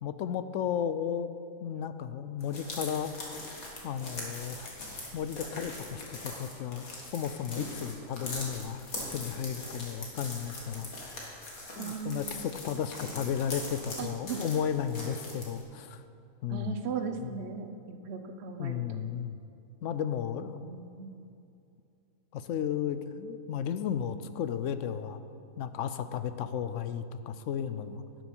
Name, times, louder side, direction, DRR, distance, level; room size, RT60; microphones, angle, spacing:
voice 1, 0.0-1.3 1.6-3.1 3.8-4.7 5.1-8.8 9.1-11.3 11.8-16.0 16.4-16.8 17.2-17.4 18.6-19.4 19.8-20.7 22.3-25.2 25.6-28.0, left 8 dB, 70° left, 11 dB, 0.9 m, -34 dB
sound 1, 2.4-15.6, left 2 dB, 85° left, 2.3 m, -41 dB
voice 2, 11.8-12.4 14.0-14.4 16.5-19.0 20.6-21.1, right 6 dB, 55° right, 6 dB, 1.0 m, -38 dB
11.5 x 9.1 x 5.4 m, 2.6 s
omnidirectional pair, 1.4 m